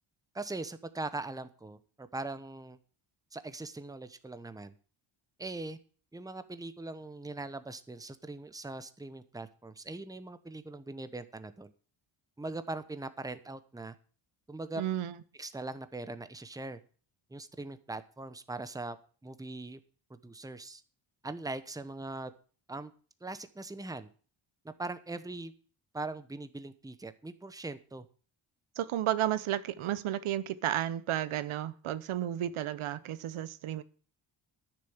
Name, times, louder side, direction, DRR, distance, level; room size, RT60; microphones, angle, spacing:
voice 1, 0.3-2.8 3.3-4.7 5.4-5.8 6.1-11.7 12.4-14.0 14.5-14.8 15.3-16.8 17.3-19.0 19.2-19.8 20.1-20.8 21.2-22.3 22.7-22.9 23.2-24.1 24.6-25.5 25.9-28.1, right 2 dB, 5° right, 0.9 m, -41 dB
voice 2, 14.8-15.1 28.8-33.8, right 12 dB, 75° right, 0.8 m, -32 dB
10.5 x 6.7 x 7.2 m
cardioid pair, 90°, 50 cm